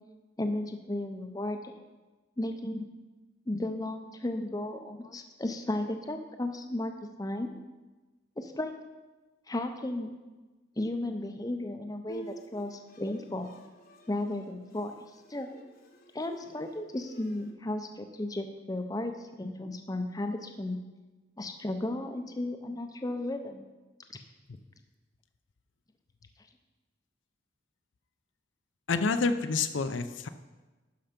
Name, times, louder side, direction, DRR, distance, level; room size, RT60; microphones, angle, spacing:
voice 1, 0.4-1.7 2.4-2.9 3.5-7.5 8.4-8.7 9.5-10.1 10.8-13.5 14.1-14.9 15.3-15.5 16.1-20.8 21.4-23.6 24.1-24.2, left 1 dB, 20° left, 6 dB, 0.6 m, -34 dB
Bowed string instrument, 12.1-17.5, right 1 dB, 50° left, 1.0 m, -51 dB
voice 2, 28.9-30.3, left 4 dB, 70° left, 9 dB, 0.6 m, -28 dB
11.5 x 5.5 x 5.1 m, 1.2 s
head